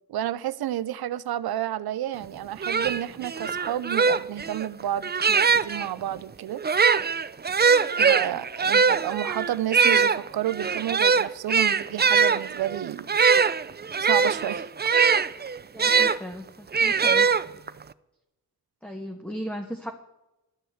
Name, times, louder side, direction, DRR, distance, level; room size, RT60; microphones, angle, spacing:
voice 1, 0.1-6.6 8.0-13.1 14.1-14.7, right 12 dB, 75° right, 0.6 m, -31 dB
sound 1, 2.2-2.3 2.6-5.9 6.6-16.2 16.7-17.8, right 5 dB, 25° right, 0.5 m, -22 dB
voice 2, 15.7-17.3 18.8-19.9, equal, 5° left, 1.4 m, -36 dB
11.5 x 6.8 x 7.9 m
supercardioid pair, 45°, 37 cm